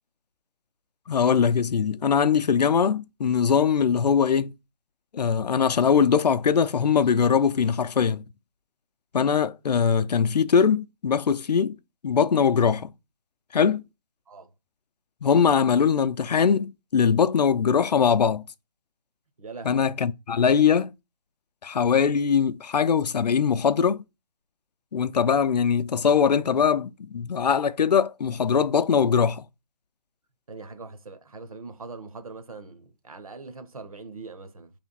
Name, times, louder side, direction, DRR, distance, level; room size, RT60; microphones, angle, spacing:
voice 1, 1.1-4.5 5.1-8.2 9.1-11.8 12.0-12.9 13.5-13.8 15.2-18.4 19.7-20.9 21.6-24.0 24.9-29.4, left 6 dB, 80° left, 0.5 m, -21 dB
voice 2, 19.4-19.9 30.5-34.7, right 4 dB, 60° right, 0.8 m, -42 dB
3.3 x 3.0 x 4.0 m
hypercardioid pair, 180°, 21 cm